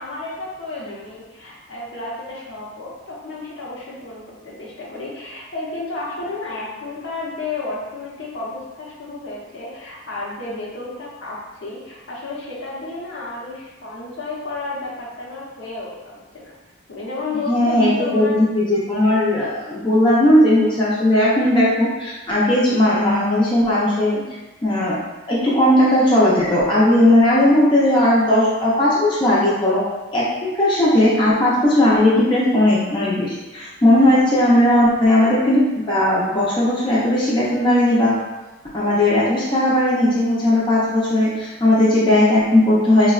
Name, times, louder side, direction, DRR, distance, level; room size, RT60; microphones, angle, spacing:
voice 1, 0.0-16.5 16.9-18.4, left 3 dB, 65° left, -5 dB, 0.7 m, -32 dB
voice 2, 17.5-24.2 24.6-25.0 25.3-29.8 30.1-38.2 38.7-43.1, left 1 dB, 25° left, -8 dB, 0.4 m, -17 dB
3.4 x 2.1 x 2.3 m, 1.1 s
head